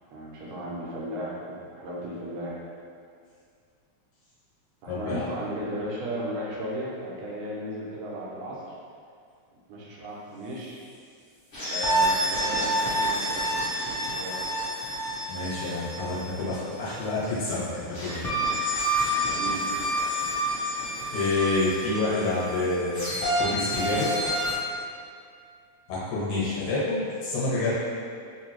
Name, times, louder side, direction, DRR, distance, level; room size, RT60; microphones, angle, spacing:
voice 1, 0.1-2.6 4.8-8.7 9.7-10.8 11.7-13.5 14.1-14.4 19.1-19.7, equal, 75° right, -5 dB, 1.7 m, -35 dB
voice 2, 4.9-5.2 15.3-18.2 21.1-24.2 25.9-27.7, left 2 dB, 80° left, -8 dB, 2.5 m, -28 dB
sound 1, 11.5-17.1 17.9-24.5, right 1 dB, 65° left, 0.7 m, -28 dB
5.0 x 2.6 x 3.0 m, 2.2 s
omnidirectional pair, 3.4 m